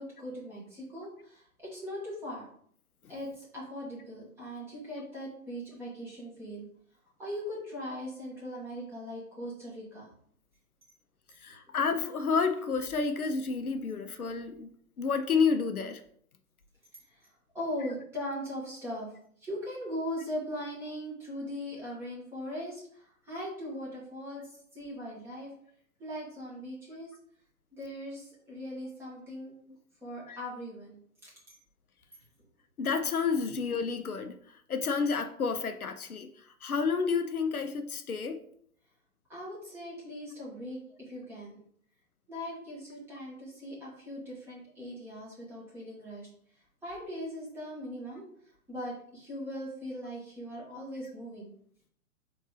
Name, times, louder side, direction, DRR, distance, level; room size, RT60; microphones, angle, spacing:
voice 1, 0.0-2.4 3.1-6.7 7.2-10.1 17.1-17.3 17.5-19.1 19.4-25.5 26.0-27.1 27.7-29.5 30.0-31.3 33.4-33.5 39.3-41.6 42.3-46.3 46.8-48.2 48.7-51.5, equal, 5° right, -6 dB, 0.9 m, -40 dB
voice 2, 11.4-14.7 15.0-16.0 30.3-30.4 32.8-34.4 34.7-36.3 36.6-38.4, left 5 dB, 75° left, 9 dB, 0.7 m, -30 dB
3.8 x 2.6 x 4.7 m, 0.62 s
figure-of-eight pair, 125°, 44 cm